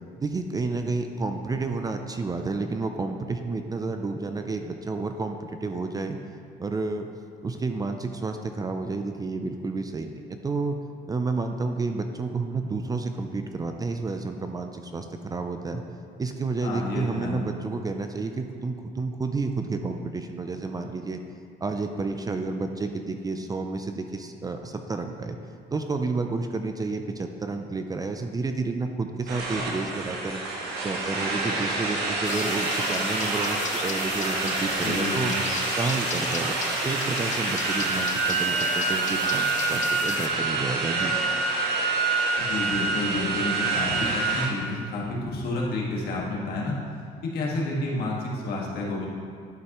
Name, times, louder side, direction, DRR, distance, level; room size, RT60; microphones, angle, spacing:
voice 1, 0.1-6.2 6.6-7.1 7.4-10.8 11.1-15.8 16.2-21.2 21.6-25.4 25.7-30.4 30.8-35.3 35.8-36.6 36.8-41.1, right 3 dB, 20° right, 6 dB, 0.4 m, -30 dB
voice 2, 16.6-17.4 34.8-35.4 42.4-46.8 47.2-49.1, left 2 dB, 65° left, -3 dB, 1.7 m, -30 dB
sound 1, 29.3-44.5, right 3 dB, 70° right, 1.4 m, -27 dB
sound 2, 32.2-40.3, left 7 dB, 45° left, 0.6 m, -37 dB
11.5 x 5.4 x 3.0 m, 2.2 s
cardioid pair, 110°, 17 cm